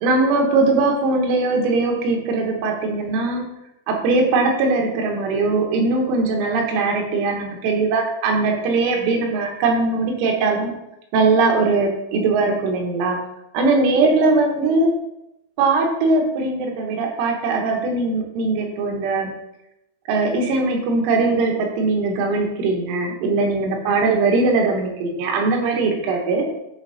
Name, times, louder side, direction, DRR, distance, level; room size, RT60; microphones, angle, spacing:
voice 1, 0.0-3.5 3.9-10.7 11.1-13.2 13.5-14.9 15.6-19.3 20.1-26.5, right 3 dB, 85° right, 1 dB, 3.8 m, -20 dB
10.5 x 4.2 x 4.1 m, 0.85 s
omnidirectional pair, 5.5 m